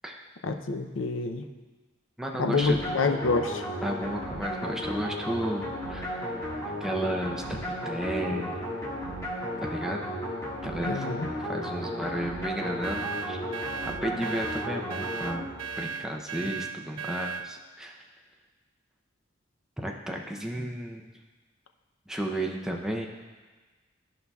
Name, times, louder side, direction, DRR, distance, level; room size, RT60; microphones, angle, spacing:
voice 1, 0.4-1.4 2.4-3.6 10.8-11.3, left 3 dB, 80° left, 6 dB, 0.5 m, -27 dB
voice 2, 2.2-2.8 3.8-6.3 6.6-7.6 7.8-8.6 9.6-10.1 10.6-11.1 11.4-13.4 13.9-15.5 15.8-18.0 19.8-21.0 22.1-23.1, right 1 dB, 5° right, 0 dB, 0.5 m, -33 dB
sound 1, 2.6-15.9, equal, 15° left, 1.7 m, -34 dB
sound 2, 12.8-17.5, right 6 dB, 85° right, 0.4 m, -36 dB
13.5 x 5.5 x 2.3 m, 1.3 s
head